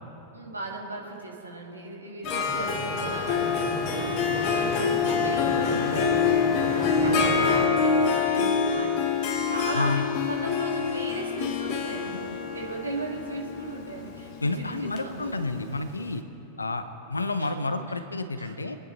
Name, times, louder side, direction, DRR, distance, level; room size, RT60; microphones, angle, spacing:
voice 1, 0.3-15.4 17.4-17.6 17.9-18.0 18.4-18.6, right 3 dB, 80° right, -1 dB, 2.5 m, -37 dB
Harp, 2.2-15.8, left 6 dB, 40° left, 1.3 m, -26 dB
sound 1, 2.5-7.7, right 1 dB, ahead, 2.6 m, -34 dB
voice 2, 14.4-16.2 16.6-16.8 17.1-18.8, left 3 dB, 80° left, 10 dB, 0.9 m, -29 dB
26.0 x 10.0 x 4.2 m, 2.8 s
figure-of-eight pair, 90°, 0 cm